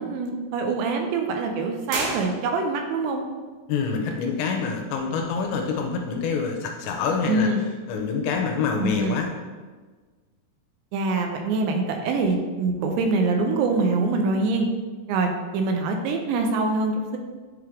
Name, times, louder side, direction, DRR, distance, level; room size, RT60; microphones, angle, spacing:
voice 1, 0.0-3.2 7.3-7.6 8.8-9.3 10.9-14.7 15.1-17.2, right 3 dB, 80° right, 4 dB, 2.8 m, -24 dB
sound 1, 1.9-2.9, right 2 dB, 65° right, 2.7 m, -32 dB
voice 2, 3.7-7.5 7.9-9.3, left 5 dB, 85° left, 3 dB, 2.7 m, -26 dB
9.0 x 3.3 x 3.6 m, 1.4 s
omnidirectional pair, 5.2 m